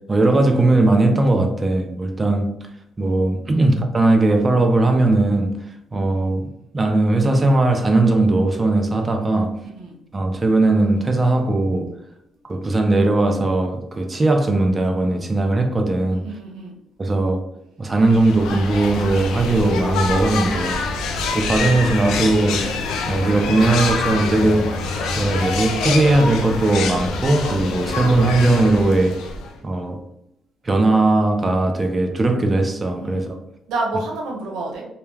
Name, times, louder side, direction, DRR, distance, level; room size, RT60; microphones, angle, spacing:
voice 1, 0.0-2.5 3.0-5.6 5.9-6.5 6.7-9.5 10.1-11.9 12.4-16.2 17.0-17.4 17.8-20.8 21.3-22.7 23.1-24.7 25.2-29.2 29.6-30.0 30.6-33.4, right 2 dB, 25° right, 0.4 m, -18 dB
voice 2, 9.6-9.9 16.1-16.7 33.0-33.3 33.7-34.8, right 2 dB, 90° right, 0.7 m, -29 dB
sound 1, 18.0-29.6, left 3 dB, 90° left, 0.4 m, -25 dB
2.2 x 2.1 x 3.1 m
cardioid pair, 90°, 0 cm